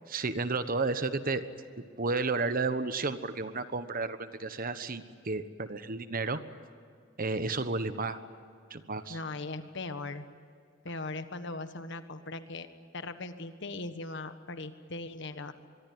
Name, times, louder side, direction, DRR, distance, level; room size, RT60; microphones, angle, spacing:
voice 1, 0.1-1.4 2.0-6.4 7.2-8.2 8.7-9.2, right 3 dB, 45° right, 11 dB, 1.2 m, -32 dB
voice 2, 9.1-10.3 10.8-12.7 12.9-15.5, left 3 dB, 65° left, 9 dB, 1.5 m, -39 dB
25.0 x 23.0 x 9.5 m, 2.3 s
head